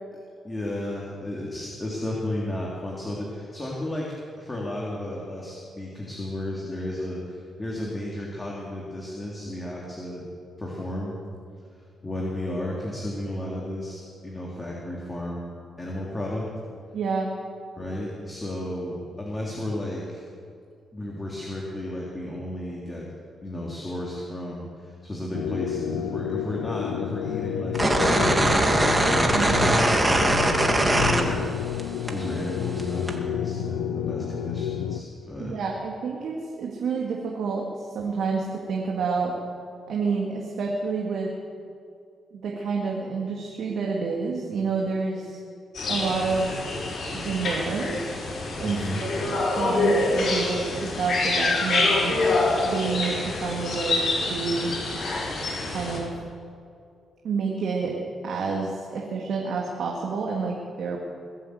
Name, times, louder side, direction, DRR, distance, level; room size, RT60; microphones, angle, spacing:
voice 1, 0.4-10.2 10.6-11.2 12.0-15.5 15.8-16.5 17.7-20.2 20.9-23.0 23.4-31.4 32.1-35.6 48.6-49.0, left 1 dB, 20° left, -4 dB, 3.3 m, -33 dB
voice 2, 16.9-17.3 29.3-29.6 35.4-39.3 39.9-41.3 42.3-45.4 45.9-46.6 47.1-48.1 48.6-49.1 49.6-52.2 52.6-54.7 55.7-56.1 57.2-58.0 58.2-61.0, right 4 dB, 70° right, -1 dB, 2.1 m, -29 dB
sound 1, 25.3-35.0, left 10 dB, 90° left, 0.6 m, -30 dB
sound 2, 27.7-31.8 32.1-33.1, right 1 dB, 20° right, 2.3 m, -21 dB
sound 3, 45.7-56.0, left 2 dB, 60° left, 5.1 m, -26 dB
21.0 x 7.6 x 8.0 m, 2.4 s
supercardioid pair, 60°, 0 cm